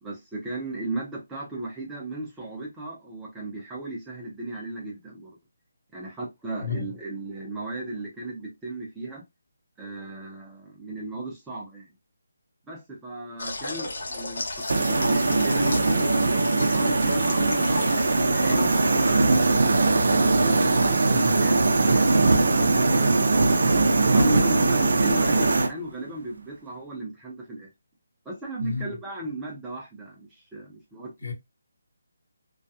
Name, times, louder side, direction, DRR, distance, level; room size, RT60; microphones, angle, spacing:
voice 1, 0.0-5.3 5.9-9.2 9.8-11.9 12.7-21.6 24.1-27.7 28.2-31.3, right 2 dB, 5° right, 0.5 m, -36 dB
sound 1, 13.4-19.6, left 2 dB, 40° left, 0.7 m, -35 dB
sound 2, 14.7-25.7, right 3 dB, 55° right, 0.5 m, -21 dB
voice 2, 28.6-28.9 31.2-31.3, left 5 dB, 80° left, 0.8 m, -31 dB
2.3 x 2.2 x 2.6 m
hypercardioid pair, 180°, 0 cm